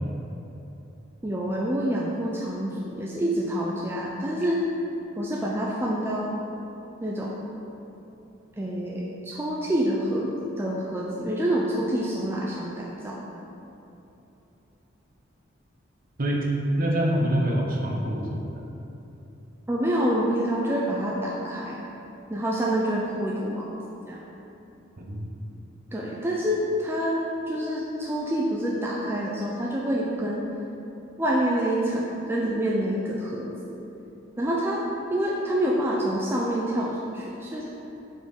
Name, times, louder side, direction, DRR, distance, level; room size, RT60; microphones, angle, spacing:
voice 1, 1.2-4.6 5.2-6.4 7.0-7.4 8.6-10.3 10.6-13.2 19.7-21.8 22.3-23.7 24.1-24.2 25.9-27.2 27.5-30.5 31.2-33.8 34.4-34.8 35.1-37.7, right 1 dB, 10° right, -4 dB, 0.4 m, -27 dB
voice 2, 16.8-18.6 25.0-25.3, equal, 45° right, -1 dB, 0.8 m, -25 dB
4.7 x 4.5 x 5.1 m, 2.9 s
head